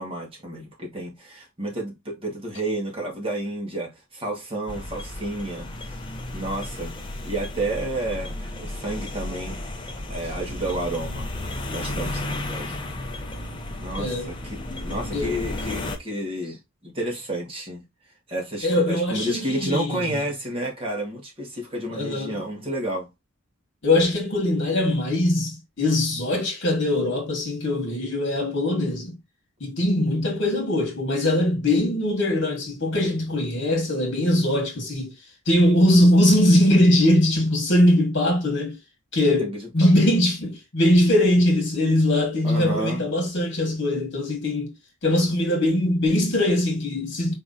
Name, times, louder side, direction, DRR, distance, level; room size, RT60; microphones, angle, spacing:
voice 1, 0.0-6.1 6.3-9.6 10.1-11.3 11.7-12.8 13.8-17.8 18.3-23.1 39.4-39.9 42.4-43.0, right 1 dB, 25° right, 1.6 m, -31 dB
sound 1, 4.7-16.0, left 1 dB, 25° left, 0.8 m, -33 dB
voice 2, 14.0-14.3 15.1-15.4 18.6-20.0 21.9-22.4 23.8-29.2 29.6-35.1 35.5-38.8 39.1-44.7 45.0-47.3, left 1 dB, 55° left, 1.9 m, -21 dB
4.7 x 3.6 x 2.7 m
head